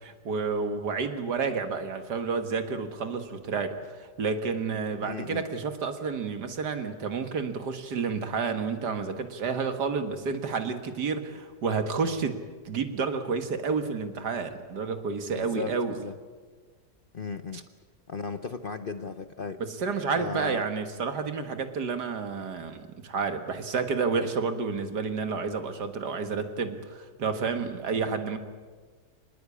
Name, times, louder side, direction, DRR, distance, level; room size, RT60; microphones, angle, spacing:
voice 1, 0.0-12.4 12.7-16.0 19.6-28.4, right 5 dB, 80° right, 7 dB, 2.3 m, -30 dB
voice 2, 5.0-5.4 15.3-16.1 17.1-17.6 18.1-19.6 20.2-20.6, left 4 dB, 45° left, 10 dB, 0.8 m, -36 dB
25.5 x 20.0 x 8.6 m, 1.5 s
omnidirectional pair, 1.8 m